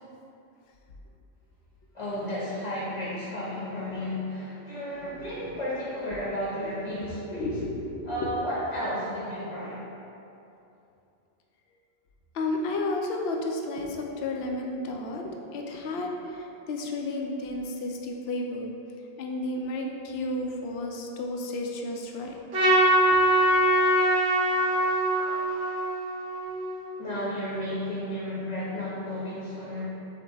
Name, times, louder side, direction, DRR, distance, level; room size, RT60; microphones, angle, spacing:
voice 1, 1.9-7.5 8.0-9.8 27.0-29.8, equal, 30° left, -8 dB, 0.8 m, -33 dB
voice 2, 5.0-5.6 7.3-8.3 12.3-18.7 19.2-22.4 23.1-23.2, left 2 dB, 65° left, 1 dB, 0.8 m, -32 dB
Trumpet, 22.5-26.9, right 1 dB, 60° right, 1.2 m, -23 dB
6.0 x 2.2 x 4.0 m, 2.8 s
omnidirectional pair, 1.2 m